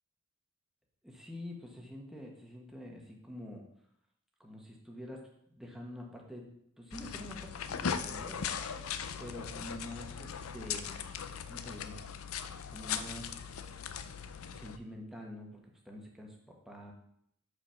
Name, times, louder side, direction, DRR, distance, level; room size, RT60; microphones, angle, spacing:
voice 1, 1.0-3.6 4.4-5.2 5.5-6.4 6.8-8.6 9.2-11.0 11.4-12.0 12.7-13.4 14.4-16.9, left 1 dB, ahead, -1 dB, 1.2 m, -46 dB
sound 1, 6.9-14.8, left 7 dB, 80° left, 0.5 m, -39 dB
6.1 x 5.4 x 5.7 m, 0.72 s
head